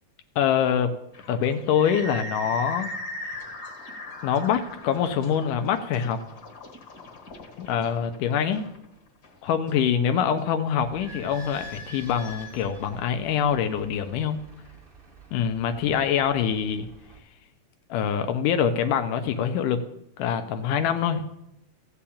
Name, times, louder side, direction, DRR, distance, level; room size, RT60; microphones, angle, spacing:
voice 1, 0.4-0.9 1.3-2.9 3.2-3.4 4.2-6.2 7.6-8.7 9.4-14.4 15.3-16.9 17.9-19.8 20.2-21.2, left 8 dB, 80° left, 8 dB, 2.2 m, -25 dB
sound 1, 1.1-10.4, left 1 dB, 40° left, 1.5 m, -40 dB
Idling / Squeak, 10.8-17.2, equal, 45° right, 0.7 m, -46 dB
14.5 x 5.8 x 8.6 m, 0.84 s
omnidirectional pair, 3.7 m